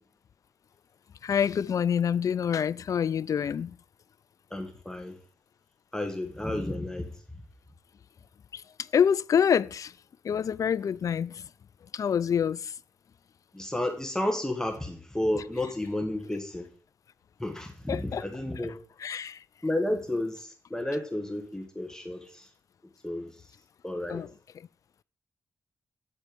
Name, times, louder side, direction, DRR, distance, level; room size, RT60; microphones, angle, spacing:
voice 1, 1.2-3.7 8.5-8.6 8.9-9.9 10.2-11.5 11.9-12.7 17.9-18.2 19.0-19.4 24.1-24.3, left 8 dB, 60° left, 0.3 m, -26 dB
voice 2, 4.5-5.2 5.9-7.1 13.5-16.7 17.4-18.7 19.6-22.5 23.0-23.4 23.8-24.2, left 1 dB, 10° left, 1.4 m, -32 dB
9.4 x 4.3 x 5.2 m
cardioid pair, 55°, 7 cm